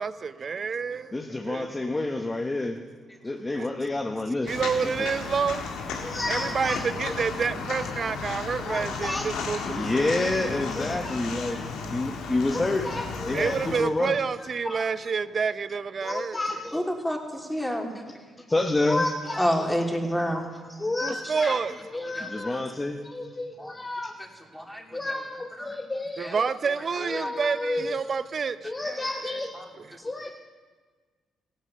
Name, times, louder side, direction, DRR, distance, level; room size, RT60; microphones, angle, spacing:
voice 1, 0.0-1.7 3.6-3.7 4.4-5.7 6.3-10.2 13.3-16.4 21.0-21.7 22.1-22.2 26.2-29.5 29.8-30.0, right 5 dB, 45° right, 0.8 m, -29 dB
voice 2, 1.1-2.8 3.2-4.5 6.0-6.8 8.6-14.2 14.6-15.2 16.0-16.9 18.5-19.7 20.8-21.6 21.9-24.1 24.9-26.5 27.0-28.0 28.6-29.6 30.0-30.4, left 2 dB, 20° left, 1.2 m, -29 dB
Walk footsteps, 4.5-13.8, left 4 dB, 80° left, 1.9 m, -34 dB
voice 3, 16.7-17.9 19.4-20.5 22.1-22.3 23.6-23.7 24.5-25.2 25.6-25.8 26.2-26.3 27.2-27.3 29.5-29.6, equal, 5° left, 3.0 m, -29 dB
15.5 x 11.5 x 8.0 m
supercardioid pair, 65°, 0 cm